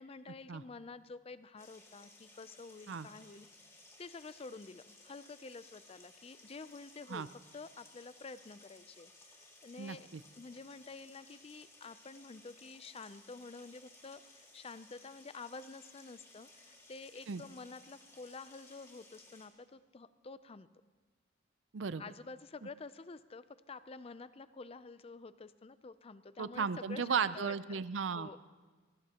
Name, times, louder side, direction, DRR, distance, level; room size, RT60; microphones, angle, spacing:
voice 1, 0.0-3.5 4.0-10.1 10.4-20.7 22.0-27.8 28.1-28.4, left 4 dB, 30° left, 14 dB, 0.5 m, -49 dB
sound 1, 1.6-19.5, left 2 dB, 15° left, 2.1 m, -59 dB
voice 2, 9.8-10.2 17.3-17.4 21.7-22.0 26.4-28.4, right 6 dB, 75° right, 15 dB, 0.5 m, -35 dB
22.5 x 17.5 x 2.9 m, 1.4 s
head